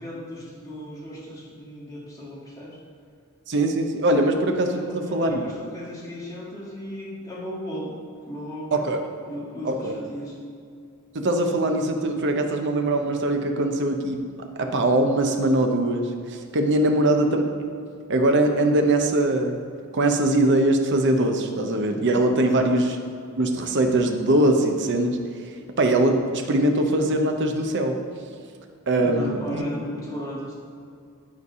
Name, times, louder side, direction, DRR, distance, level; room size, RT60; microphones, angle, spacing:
voice 1, 0.0-2.8 4.2-4.3 4.7-7.9 8.2-8.7 9.2-10.4 16.8-17.0 22.3-22.7 29.0-30.5, equal, 15° left, -6 dB, 1.7 m, -35 dB
voice 2, 3.5-5.5 8.7-9.0 9.6-9.9 11.1-14.2 14.6-17.7 18.1-19.6 19.9-23.0 23.4-25.2 25.8-28.0 28.9-29.6, right 1 dB, 55° right, 4 dB, 0.7 m, -22 dB
9.6 x 3.3 x 5.4 m, 2.4 s
head